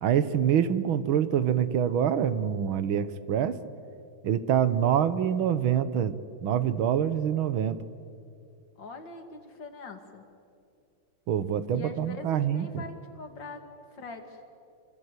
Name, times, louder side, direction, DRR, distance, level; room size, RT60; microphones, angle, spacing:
voice 1, 0.0-3.6 4.2-6.2 6.4-7.8 11.3-12.8, right 9 dB, 90° right, 13 dB, 1.9 m, -25 dB
voice 2, 8.8-10.2 11.7-13.6 13.9-14.4, left 3 dB, 65° left, 6 dB, 3.0 m, -43 dB
27.5 x 25.0 x 8.3 m, 2.4 s
omnidirectional pair, 2.2 m